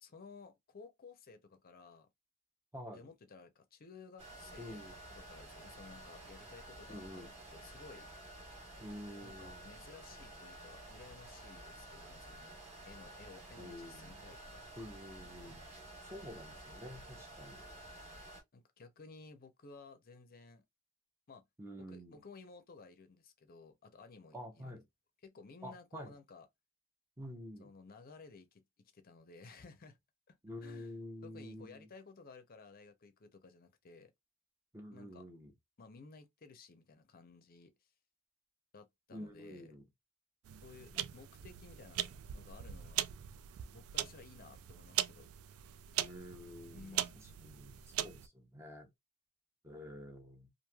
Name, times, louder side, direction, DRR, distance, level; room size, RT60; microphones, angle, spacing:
voice 1, 0.0-2.1 2.9-8.1 9.2-14.6 18.5-20.6 21.3-21.4 21.8-24.8 25.2-26.5 27.6-30.0 30.3-30.4 30.6-30.9 31.2-34.1 34.9-35.3 35.8-37.7 38.7-39.8 40.6-42.0 42.3-43.1 43.7-45.3 46.7-47.2, left 4 dB, 40° left, 0.6 m, -56 dB
voice 2, 2.7-3.1 4.6-5.0 6.9-7.3 8.8-9.7 13.6-14.1 14.8-15.6 16.1-17.6 21.6-22.2 24.3-24.8 25.6-26.1 27.2-27.7 30.4-31.9 34.7-35.5 39.1-39.8 40.9-41.1 46.0-48.9 49.6-50.5, equal, 10° right, 0.6 m, -48 dB
sound 1, 4.2-18.4, right 1 dB, 30° right, 1.3 m, -52 dB
sound 2, 40.5-48.3, right 12 dB, 70° right, 0.3 m, -40 dB
3.1 x 2.5 x 2.2 m
head